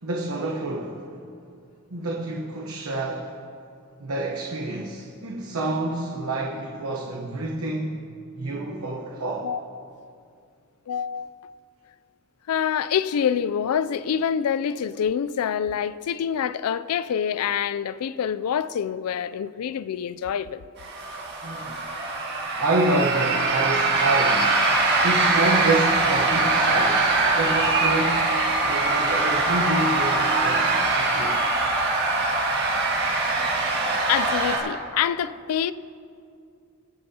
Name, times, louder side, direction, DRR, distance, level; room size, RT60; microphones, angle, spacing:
voice 1, 0.0-1.0 1.9-3.3 4.0-8.1 8.3-9.5 21.4-21.8 22.6-24.6 25.0-28.4 28.6-31.4, right 2 dB, 75° right, 1.0 m, -28 dB
voice 2, 9.4-9.8 10.9-11.5 12.5-20.6 34.1-35.7, left 8 dB, 75° left, 0.4 m, -26 dB
sound 1, 20.8-34.6, right 3 dB, 50° right, 1.8 m, -22 dB
23.5 x 8.9 x 2.8 m
head